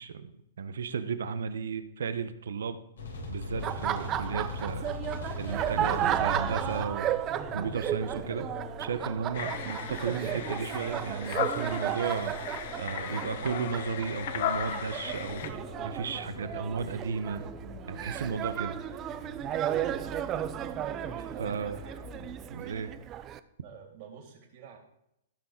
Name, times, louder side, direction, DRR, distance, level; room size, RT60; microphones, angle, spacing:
voice 1, 0.0-2.8 3.3-4.9 5.4-7.2 7.5-8.5 8.8-12.5 12.8-15.6 15.8-17.4 17.9-18.8 21.2-21.8 22.5-22.9, right 6 dB, 75° right, 12 dB, 1.0 m, -34 dB
sound 1, 3.0-22.3, left 3 dB, 80° left, 3.9 m, -42 dB
Laughter, 3.5-23.4, right 11 dB, 30° right, 0.6 m, -34 dB
sound 2, 9.3-15.5, left 9 dB, 60° left, 1.2 m, -36 dB
voice 2, 21.3-22.3 23.6-24.8, right 7 dB, 50° right, 0 dB, 3.3 m, -48 dB
15.5 x 6.1 x 5.1 m, 0.79 s
hypercardioid pair, 120°, 0 cm